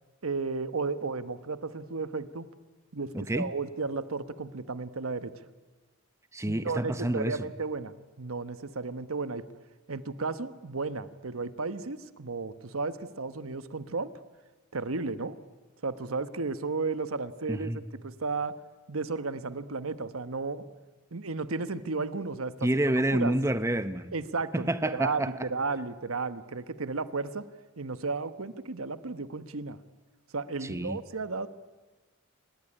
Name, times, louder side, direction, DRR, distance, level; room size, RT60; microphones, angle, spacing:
voice 1, 0.2-2.5 2.9-5.3 6.5-9.4 9.9-14.1 14.7-15.4 15.8-17.7 18.0-18.6 18.9-20.6 21.1-22.7 23.1-23.3 24.1-27.4 27.8-29.8 30.3-31.5, right 4 dB, 85° right, 13 dB, 1.1 m, -33 dB
voice 2, 3.1-3.5 6.3-7.4 17.5-17.8 22.6-24.1 24.5-25.5 30.6-31.0, right 1 dB, 15° right, 12 dB, 0.9 m, -28 dB
26.0 x 20.0 x 10.0 m, 1.2 s
head